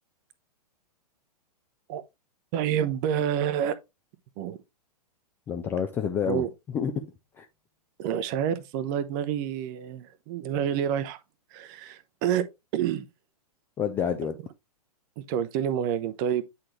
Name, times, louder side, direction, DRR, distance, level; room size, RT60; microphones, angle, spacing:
voice 1, 2.5-3.8 4.4-4.6 6.3-6.5 8.0-11.2 11.5-12.4 12.7-13.0 15.2-16.4, right 9 dB, 30° right, 0.7 m, -28 dB
voice 2, 5.5-6.5 6.7-7.1 7.4-7.5 13.8-14.4, left 7 dB, 10° left, 0.3 m, -28 dB
8.6 x 4.1 x 3.0 m
figure-of-eight pair, 110°, 20 cm